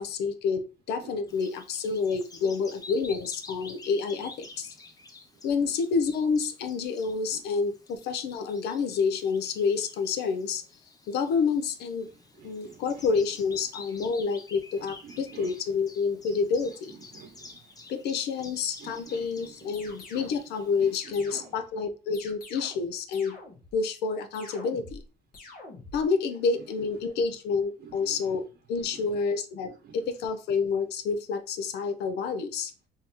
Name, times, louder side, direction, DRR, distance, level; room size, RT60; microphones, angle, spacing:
voice 1, 0.0-4.7 5.4-10.6 11.1-12.1 12.4-16.9 17.9-23.4 23.7-25.0 25.9-28.4 28.7-32.7, left 5 dB, 75° left, 10 dB, 0.6 m, -28 dB
voice 2, 1.0-1.4 2.4-2.6 4.1-4.3 5.3-5.7 7.3-7.4 12.1-13.1 14.7-15.6 16.3-17.9 18.8-19.7 20.8-21.5 26.6-26.9 27.8-28.3 28.7-29.2 29.6-30.1, right 6 dB, 60° right, 3 dB, 0.8 m, -50 dB
Bird vocalization bird call bird song, 1.3-21.0, left 3 dB, 20° left, 0.6 m, -50 dB
sound 1, 19.7-20.4 20.9-21.7 22.1-22.9 23.1-23.8 24.3-25.0 25.3-26.0, left 2 dB, 60° left, 1.4 m, -46 dB
3.6 x 2.8 x 2.9 m, 0.33 s
cardioid pair, 110°, 17 cm